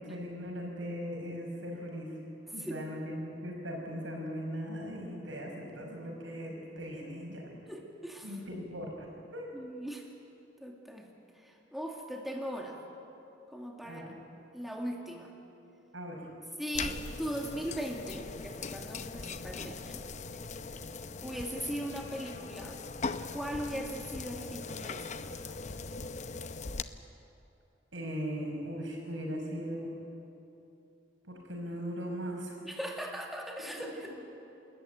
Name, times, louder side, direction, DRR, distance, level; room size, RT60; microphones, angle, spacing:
voice 1, 0.0-2.2 2.5-7.5 8.2-9.1 9.3-9.5 13.8-14.2 15.9-16.2 27.9-29.9 31.3-32.6, equal, 85° right, 0 dB, 5.7 m, -39 dB
voice 2, 7.7-8.4 9.5-10.1 10.6-11.1 11.3-12.8 13.5-14.0 14.5-15.3 16.6-20.1 21.2-22.8 23.3-25.4 32.6-34.2, equal, ahead, 0 dB, 2.0 m, -39 dB
sound 1, 16.7-26.8, left 4 dB, 40° left, 0.7 m, -40 dB
28.0 x 14.0 x 9.2 m, 2.8 s
head